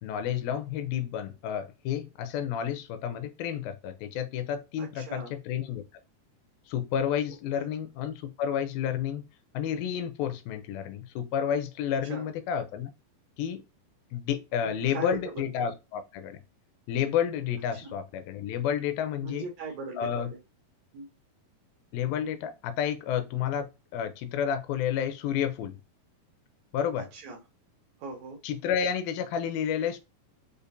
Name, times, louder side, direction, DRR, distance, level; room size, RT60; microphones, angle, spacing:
voice 1, 0.0-5.8 6.7-9.2 9.5-12.9 13.4-13.6 14.1-16.4 16.9-19.5 20.0-20.3 21.9-23.7 23.9-25.8 26.7-27.1 28.4-30.0, left 9 dB, 80° left, 2.4 m, -30 dB
voice 2, 4.8-5.3 7.6-7.7 12.0-12.3 14.6-15.2 17.8-17.9 19.2-20.4 20.9-21.1 27.0-27.4 28.0-28.4, right 3 dB, 85° right, 1.5 m, -39 dB
6.6 x 2.5 x 2.6 m
omnidirectional pair, 4.4 m